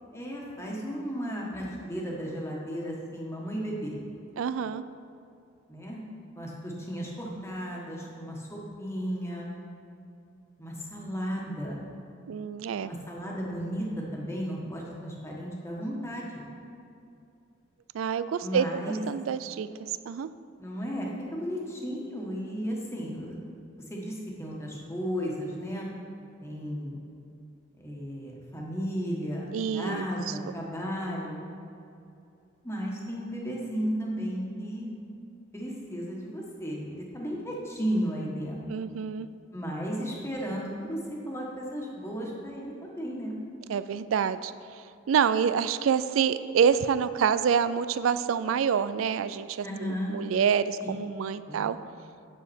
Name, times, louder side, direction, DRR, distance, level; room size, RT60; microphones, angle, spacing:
voice 1, 0.1-4.0 5.7-6.0 6.3-9.5 10.6-11.8 12.8-16.4 18.4-19.0 20.6-23.4 23.9-25.9 26.4-27.0 27.7-31.4 32.6-34.9 35.5-38.6 39.5-43.3 49.6-50.1 50.8-50.9 51.5-51.6, equal, 15° left, -3 dB, 1.5 m, -34 dB
voice 2, 4.4-4.8 12.3-12.9 17.9-19.7 20.1-20.3 29.5-30.3 38.7-39.3 43.7-44.5 45.1-51.8, right 7 dB, 90° right, 14 dB, 0.3 m, -27 dB
9.9 x 6.9 x 4.4 m, 2.6 s
head